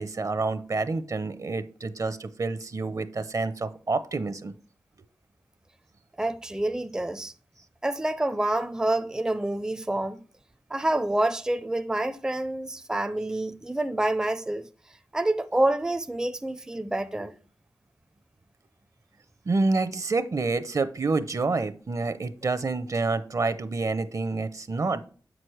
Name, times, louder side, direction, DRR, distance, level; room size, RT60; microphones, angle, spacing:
voice 1, 0.0-4.5 19.5-25.1, right 3 dB, 55° right, 0.6 m, -28 dB
voice 2, 6.2-7.3 7.8-10.2 10.7-14.7 15.1-17.3, right 1 dB, 10° right, 0.4 m, -27 dB
7.5 x 6.2 x 3.2 m
cardioid pair, 60°, 7 cm